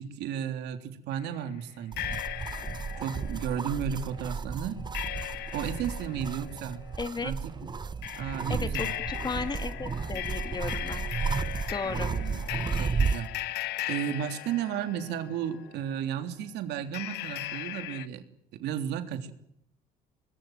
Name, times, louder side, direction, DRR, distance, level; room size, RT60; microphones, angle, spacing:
voice 1, 0.0-2.2 3.0-4.8 5.5-6.8 7.2-7.4 8.2-8.9 11.8-12.5 12.8-13.3 13.9-18.2 18.5-19.3, right 9 dB, 80° right, 7 dB, 3.3 m, -33 dB
sound 1, 1.1-1.3 2.0-15.9 16.9-18.1, left 14 dB, 75° left, 1.4 m, -38 dB
sound 2, 1.9-13.3, right 5 dB, 25° right, 1.0 m, -33 dB
voice 2, 7.0-7.3 8.5-11.1 11.7-12.1, left 4 dB, 25° left, 9 dB, 2.4 m, -35 dB
24.5 x 21.0 x 9.1 m, 0.76 s
cardioid pair, 110°, 17 cm